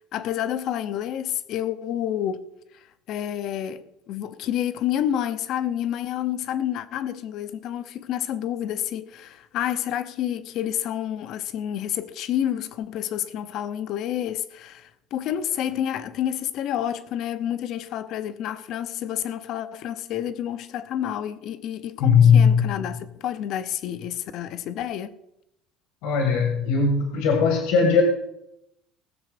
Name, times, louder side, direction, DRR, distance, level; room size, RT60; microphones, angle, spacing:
voice 1, 0.1-2.4 3.1-25.1, left 10 dB, 45° left, 0.9 m, -29 dB
voice 2, 22.0-22.8 26.0-28.0, left 6 dB, 75° left, 2.0 m, -18 dB
19.5 x 7.0 x 5.1 m
cardioid pair, 170°, 0 cm